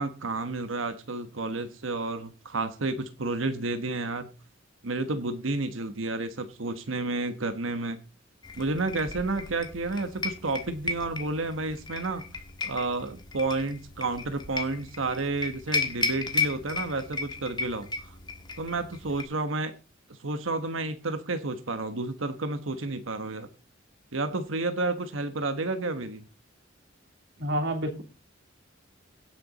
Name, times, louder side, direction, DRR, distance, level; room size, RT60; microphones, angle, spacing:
voice 1, 0.0-4.3 4.8-8.0 8.6-12.2 12.6-18.1 18.6-19.7 20.1-23.5 24.1-26.2, right 3 dB, 90° right, 8 dB, 1.3 m, -31 dB
sound 1, 8.4-19.2, left 3 dB, 25° left, 1.6 m, -35 dB
voice 2, 27.4-28.0, right 1 dB, 65° right, 4 dB, 3.1 m, -28 dB
17.0 x 6.7 x 4.1 m, 0.31 s
head